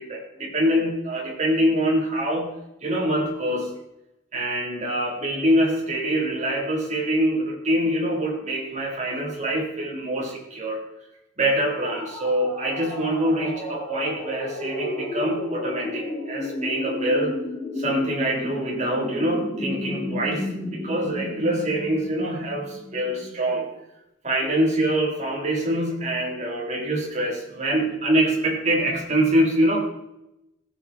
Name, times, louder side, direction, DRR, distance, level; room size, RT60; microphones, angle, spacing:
voice 1, 0.0-2.5 2.8-3.8 4.3-10.8 11.4-17.4 17.8-23.7 24.2-29.8, right 1 dB, 40° right, -3 dB, 3.7 m, -24 dB
sound 1, 11.8-23.5, left 1 dB, 5° right, 4.8 m, -33 dB
16.0 x 8.4 x 4.3 m, 0.89 s
head